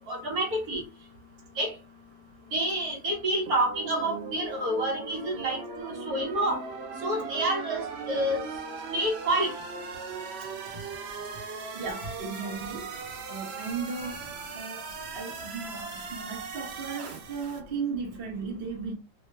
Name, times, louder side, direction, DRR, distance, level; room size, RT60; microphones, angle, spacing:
voice 1, 0.1-0.8 1.6-1.7 2.5-6.6 7.0-8.4 8.9-9.5, right 1 dB, 65° right, 1.5 m, -28 dB
sound 1, 3.5-17.6, right 5 dB, 90° right, 0.5 m, -39 dB
voice 2, 11.7-12.9 13.3-18.9, right 5 dB, 40° right, 0.9 m, -36 dB
3.2 x 2.1 x 3.2 m
omnidirectional pair, 1.8 m